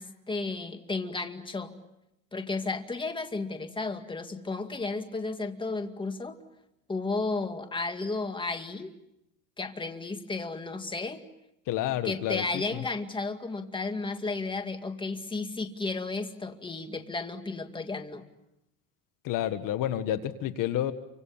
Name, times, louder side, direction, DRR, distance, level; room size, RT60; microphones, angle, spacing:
voice 1, 0.0-1.8 2.3-6.4 6.9-8.9 9.6-11.2 12.0-18.2, left 3 dB, 15° left, 6 dB, 2.2 m, -33 dB
voice 2, 11.7-12.4 12.7-12.8 19.2-20.9, left 12 dB, 60° left, 11 dB, 1.6 m, -29 dB
29.0 x 25.5 x 7.2 m, 0.85 s
supercardioid pair, 115°, 37 cm